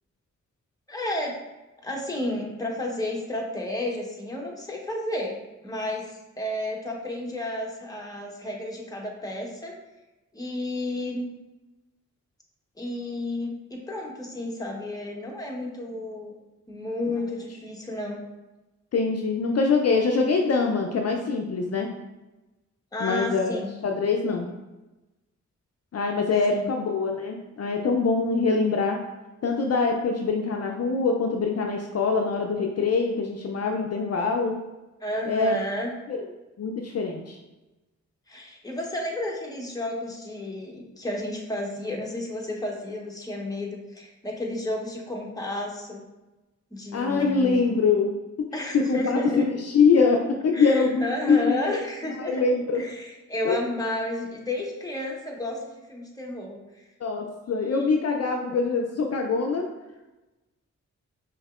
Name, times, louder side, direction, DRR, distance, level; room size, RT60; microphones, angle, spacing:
voice 1, 0.9-1.3 1.8-5.4 5.6-6.1 6.4-9.7 10.3-11.3 12.8-16.3 16.7-18.2 22.9-23.7 26.5-26.7 35.0-35.9 38.3-46.0 46.7-47.8 48.5-49.5 50.5-52.5 52.7-56.8 57.6-57.8, left 1 dB, 10° left, -1 dB, 0.9 m, -32 dB
voice 2, 18.9-21.9 23.0-23.6 23.8-24.5 25.9-29.0 29.4-34.6 35.3-35.6 36.1-36.3 36.6-37.4 46.9-51.8 52.3-52.9 53.4-53.5 57.0-59.7, left 4 dB, 55° left, 2 dB, 0.5 m, -24 dB
5.3 x 2.9 x 2.4 m, 1.1 s
cardioid pair, 60°, 30 cm